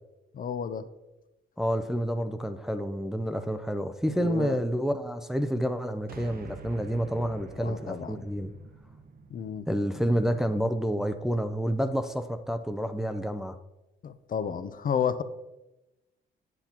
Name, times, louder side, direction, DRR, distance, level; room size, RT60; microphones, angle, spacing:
voice 1, 0.3-0.9 4.2-4.6 7.6-8.2 9.3-9.7 14.0-15.2, left 7 dB, 45° left, 0.5 m, -31 dB
voice 2, 1.6-8.5 9.7-13.6, equal, ahead, 0.5 m, -29 dB
sound 1, 6.1-10.5, right 4 dB, 45° right, 0.8 m, -47 dB
8.8 x 8.0 x 2.9 m
cardioid pair, 90°, 20 cm